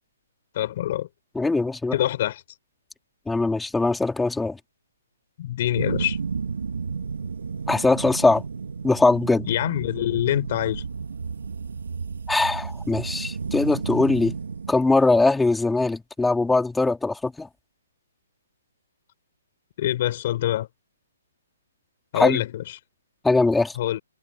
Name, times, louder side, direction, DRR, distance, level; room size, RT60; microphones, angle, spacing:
voice 1, 0.5-1.1 1.9-2.4 5.4-6.2 9.5-10.8 19.8-20.7 22.1-22.6 23.8-24.0, left 13 dB, 45° left, 6.3 m, -25 dB
voice 2, 1.3-2.0 3.3-4.6 7.7-8.4 8.8-9.5 12.3-14.3 14.7-17.5 22.1-22.4 23.2-23.8, left 3 dB, 5° left, 4.4 m, -21 dB
sound 1, 5.7-14.7, right 5 dB, 80° right, 2.9 m, -32 dB
hypercardioid pair, 150°, 0 cm